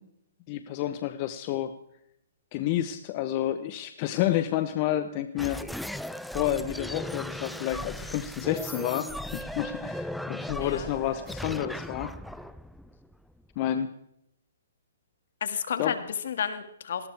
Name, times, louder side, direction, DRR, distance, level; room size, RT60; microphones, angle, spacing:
voice 1, 0.5-1.7 2.5-5.6 6.3-9.1 9.3-12.1 13.6-13.9 15.8-15.9, left 12 dB, 35° left, 10 dB, 1.0 m, -29 dB
sound 1, 5.4-13.6, equal, ahead, 0.5 m, -37 dB
voice 2, 15.4-17.1, left 8 dB, 65° left, 9 dB, 2.1 m, -31 dB
19.0 x 18.0 x 3.5 m, 0.78 s
hypercardioid pair, 140°, 0 cm